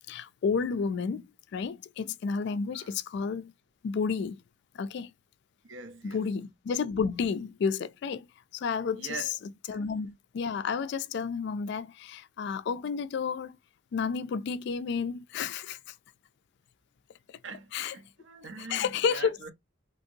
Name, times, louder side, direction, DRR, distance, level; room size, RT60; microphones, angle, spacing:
voice 1, 0.1-3.5 3.8-4.4 4.7-5.1 6.0-8.3 8.5-9.2 9.7-13.6 13.9-15.9 17.7-17.9 18.7-19.4, left 5 dB, 60° left, 0.3 m, -31 dB
voice 2, 5.6-6.2 9.0-9.3 9.7-9.8 17.4-19.5, right 4 dB, 70° right, 0.6 m, -43 dB
2.9 x 2.7 x 2.6 m
head